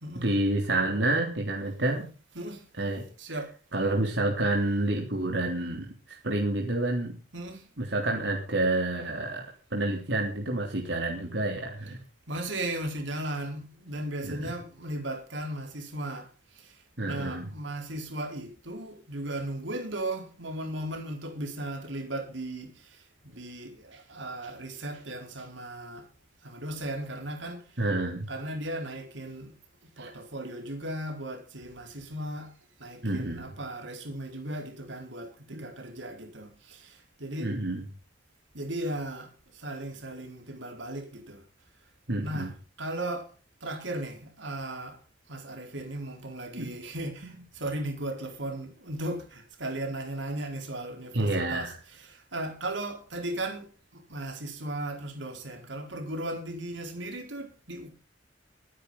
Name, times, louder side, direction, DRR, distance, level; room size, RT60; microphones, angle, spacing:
voice 1, 0.2-2.0 2.8-3.0 3.7-7.1 7.8-9.4 9.7-12.0 14.2-14.5 17.0-17.4 27.8-28.3 30.0-30.1 33.0-33.5 35.5-35.7 37.4-37.9 42.1-42.5 46.6-46.7 47.2-47.4 51.1-51.8, right 2 dB, 70° right, 3.6 m, -29 dB
voice 2, 3.2-3.5 7.3-7.7 12.3-26.1 26.4-27.8 28.3-29.5 30.0-32.5 32.8-37.5 38.5-41.4 42.2-42.5 42.8-43.3 43.6-45.0 45.3-51.7 52.0-57.9, right 1 dB, 90° right, 4.3 m, -36 dB
23.5 x 10.5 x 4.1 m
head